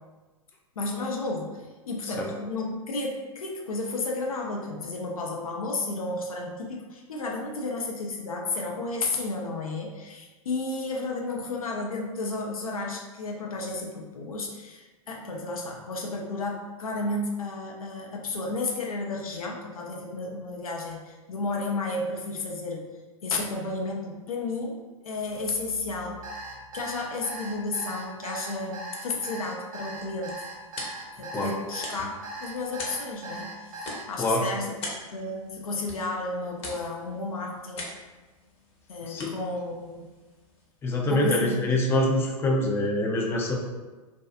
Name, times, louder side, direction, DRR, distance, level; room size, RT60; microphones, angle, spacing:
voice 1, 0.8-22.9 23.2-30.4 31.2-34.8 35.1-37.9 38.9-40.0 41.1-41.6, left 2 dB, 80° left, 0 dB, 0.5 m, -32 dB
Alarm, 26.2-34.0, right 2 dB, 70° right, 0.6 m, -39 dB
sound 1, 29.7-40.9, left 2 dB, 30° left, 0.8 m, -44 dB
voice 2, 40.8-43.6, left 1 dB, 15° left, -1 dB, 0.4 m, -25 dB
2.6 x 2.3 x 2.4 m, 1.2 s
hypercardioid pair, 100°, 18 cm